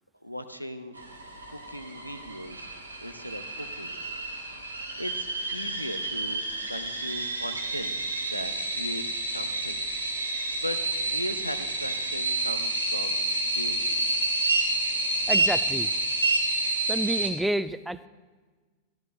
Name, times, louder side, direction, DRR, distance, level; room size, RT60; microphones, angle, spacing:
voice 1, 0.2-1.0 1.5-2.7 3.0-4.4 5.0-10.3 10.6-13.9, equal, 90° left, 10 dB, 0.7 m, -38 dB
sound 1, 1.0-17.3, right 2 dB, 80° right, 1.5 m, -29 dB
voice 2, 15.3-15.9 16.9-18.1, right 1 dB, 5° right, 14 dB, 0.4 m, -29 dB
14.0 x 11.5 x 3.2 m, 1.4 s
figure-of-eight pair, 90°, 0 cm